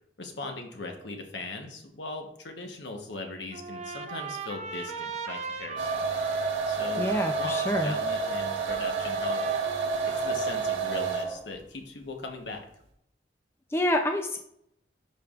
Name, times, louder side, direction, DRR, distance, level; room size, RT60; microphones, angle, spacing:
voice 1, 0.2-6.1 6.7-9.4 10.0-12.6, left 2 dB, 70° left, 3 dB, 1.1 m, -39 dB
Trumpet, 3.5-10.8, right 5 dB, 35° right, 0.6 m, -39 dB
sound 1, 5.8-11.4, right 4 dB, 80° right, 1.4 m, -29 dB
voice 2, 7.0-8.0 13.7-14.4, left 1 dB, 15° left, 4 dB, 0.4 m, -27 dB
10.5 x 4.7 x 2.4 m, 0.74 s
head